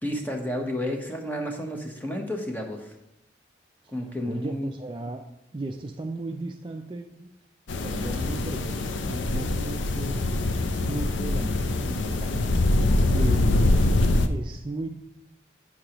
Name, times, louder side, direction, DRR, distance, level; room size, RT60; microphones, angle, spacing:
voice 1, 0.0-2.9 3.9-4.7, equal, 10° left, 2 dB, 0.9 m, -31 dB
voice 2, 4.2-5.2 5.5-7.3 7.8-10.4 10.8-12.5 13.1-13.7 14.3-14.9, right 2 dB, 25° right, 3 dB, 0.4 m, -35 dB
sound 1, 7.7-14.3, left 2 dB, 85° left, 0.5 m, -24 dB
8.9 x 6.4 x 2.9 m, 0.87 s
head